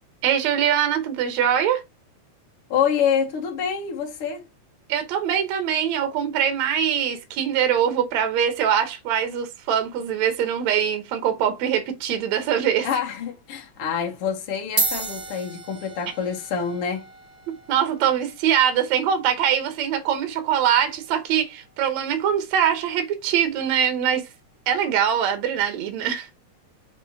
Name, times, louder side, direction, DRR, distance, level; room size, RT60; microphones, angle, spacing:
voice 1, 0.2-1.8 4.9-12.9 17.7-24.3 24.7-26.3, right 9 dB, 75° right, 2.3 m, -23 dB
voice 2, 2.7-4.4 12.8-17.0, left 7 dB, 55° left, 2.1 m, -26 dB
sound 1, 13.2-13.4 14.3-14.4 14.6-23.3, right 3 dB, 25° right, 3.0 m, -35 dB
5.9 x 4.5 x 4.5 m
omnidirectional pair, 3.3 m